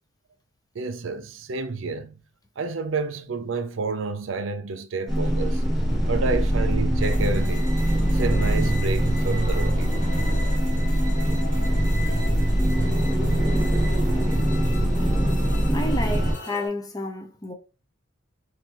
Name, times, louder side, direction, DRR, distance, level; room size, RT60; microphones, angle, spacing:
voice 1, 0.7-2.2 2.6-5.6 6.1-7.7 8.1-10.0 12.8-12.9, right 4 dB, 80° right, 0.5 m, -30 dB
sound 1, 5.1-16.3, equal, ahead, 1.1 m, -22 dB
sound 2, 7.0-16.7, left 1 dB, 40° left, 1.4 m, -39 dB
voice 2, 15.7-17.5, left 1 dB, 20° left, 0.6 m, -30 dB
4.0 x 2.7 x 3.0 m
head